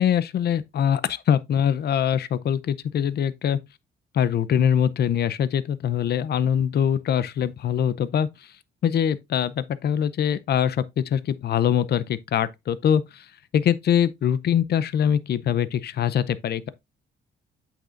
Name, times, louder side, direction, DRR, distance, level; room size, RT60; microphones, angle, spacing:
voice 1, 0.0-3.6 4.1-8.5 8.8-13.3 13.5-16.7, left 9 dB, 55° left, 0.6 m, -23 dB
8.1 x 6.4 x 2.5 m
cardioid pair, 90°, 20 cm